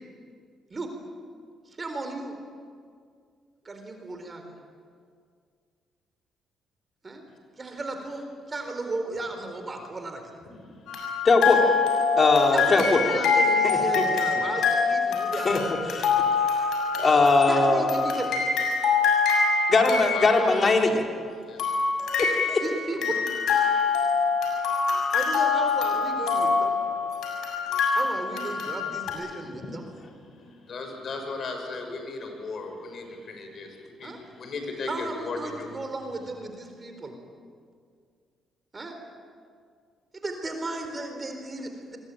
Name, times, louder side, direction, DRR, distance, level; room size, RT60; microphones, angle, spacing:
voice 1, 1.7-2.4 3.6-4.5 7.0-7.2 7.6-10.4 12.5-15.6 17.5-18.4 22.6-23.3 25.1-26.8 27.9-29.9 34.0-34.2 34.9-37.2 38.7-39.0 40.1-42.0, right 2 dB, 30° right, 5 dB, 4.2 m, -35 dB
voice 2, 10.6-10.9 20.0-20.7 21.4-21.8 29.1-29.8 30.2-35.7, left 3 dB, 55° left, 4 dB, 6.5 m, -37 dB
sound 1, 10.9-20.8 21.6-29.1, left 5 dB, 80° left, 6.8 m, -25 dB
voice 3, 11.2-11.6 12.2-13.0 13.6-14.0 15.4-15.6 15.9-16.1 16.5-17.9 19.7-21.0 22.2-22.6, left 3 dB, 40° left, 2 dB, 4.2 m, -21 dB
26.0 x 23.0 x 9.2 m, 2.2 s
cardioid pair, 90°, 0 cm